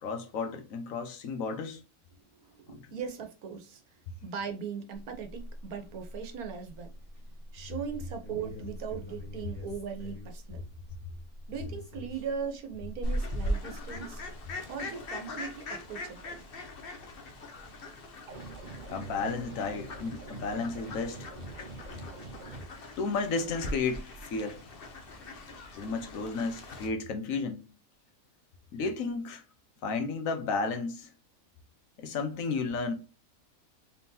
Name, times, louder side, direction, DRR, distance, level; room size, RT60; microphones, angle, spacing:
voice 1, 0.0-1.8 2.7-2.8 18.9-21.3 23.0-24.6 25.8-27.7 28.7-29.4 29.8-31.1 32.0-32.9, left 4 dB, 70° left, 1.2 m, -33 dB
voice 2, 2.2-6.9 7.5-10.6 11.5-14.2 14.7-16.4, right 6 dB, 85° right, 1.4 m, -39 dB
sound 1, 4.9-14.5, left 1 dB, 10° left, 1.4 m, -46 dB
Fowl, 13.0-26.9, left 1 dB, 45° left, 0.9 m, -40 dB
sound 2, 18.3-22.7, right 3 dB, 45° right, 0.6 m, -45 dB
4.3 x 3.7 x 2.7 m
omnidirectional pair, 1.5 m